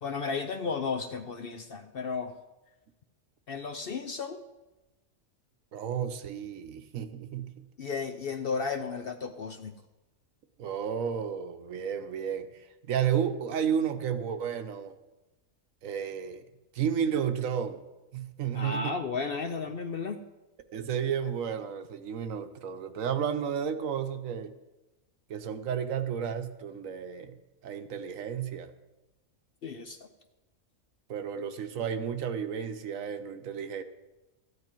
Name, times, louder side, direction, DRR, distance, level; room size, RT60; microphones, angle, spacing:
voice 1, 0.0-2.3 3.5-4.4 7.8-9.7 18.5-20.2 29.6-30.1, left 5 dB, 55° left, 7 dB, 0.7 m, -34 dB
voice 2, 5.7-7.7 10.6-14.9 15.8-16.4 16.7-17.8 18.1-18.9 20.7-24.5 25.3-27.4 27.6-28.7 31.1-33.8, right 8 dB, 70° right, 9 dB, 1.1 m, -32 dB
14.0 x 9.6 x 4.5 m, 1.0 s
omnidirectional pair, 1.5 m